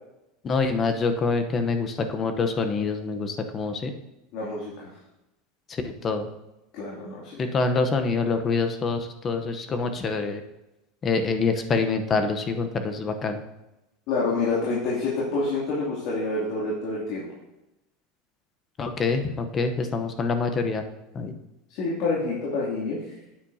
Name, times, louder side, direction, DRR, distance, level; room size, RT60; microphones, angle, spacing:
voice 1, 0.4-3.9 5.7-6.3 7.4-10.4 11.0-13.4 18.8-20.8 21.1-21.3, left 4 dB, 25° left, 7 dB, 0.8 m, -26 dB
voice 2, 4.3-4.9 6.7-7.4 14.1-17.3 21.7-23.0, left 3 dB, 60° left, -6 dB, 2.5 m, -27 dB
9.7 x 8.6 x 2.7 m, 0.95 s
supercardioid pair, 135°, 0 cm